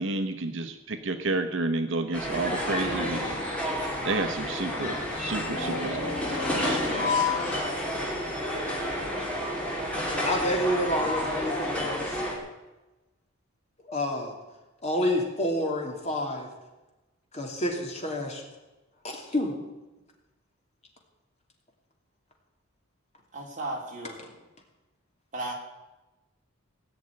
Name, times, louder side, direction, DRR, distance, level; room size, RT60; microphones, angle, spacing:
voice 1, 0.0-3.2 4.0-6.9, right 2 dB, 60° right, 7 dB, 0.9 m, -31 dB
sound 1, 2.1-12.4, equal, 5° left, 3.1 m, -30 dB
sound 2, 2.8-3.6 4.7-8.3 8.7-8.8 9.9-10.0, left 5 dB, 80° left, 3.6 m, -33 dB
voice 2, 6.9-7.2 10.2-12.2 13.9-14.3 14.8-16.5 17.3-18.4 19.0-19.5, left 1 dB, 30° left, 1 dB, 2.7 m, -29 dB
voice 3, 23.3-24.3 25.3-25.5, right 2 dB, 35° right, -1 dB, 3.4 m, -35 dB
18.0 x 6.5 x 9.7 m, 1.1 s
head